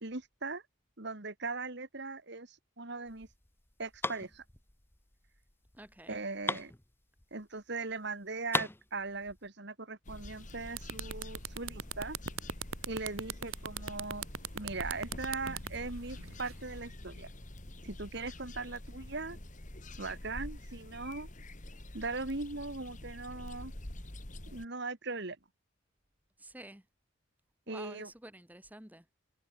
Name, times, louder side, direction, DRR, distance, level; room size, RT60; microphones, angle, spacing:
voice 1, 0.0-0.6 1.0-3.3 3.8-4.4 6.1-6.7 7.3-12.2 12.8-14.3 14.5-17.3 17.8-19.4 20.0-21.3 21.9-23.7 24.5-25.4 27.7-28.1, right 3 dB, 55° right, 1.8 m, -39 dB
sound 1, 3.1-7.6 7.9-8.0 8.2-9.5, left 2 dB, 10° left, 1.1 m, -39 dB
voice 2, 5.8-6.2 26.4-26.9 27.7-29.2, right 1 dB, 10° right, 1.7 m, -50 dB
sound 2, 10.1-24.7, left 1 dB, 35° left, 2.3 m, -46 dB
sound 3, 10.3-10.4 10.7-16.8, right 6 dB, 75° right, 3.3 m, -39 dB
head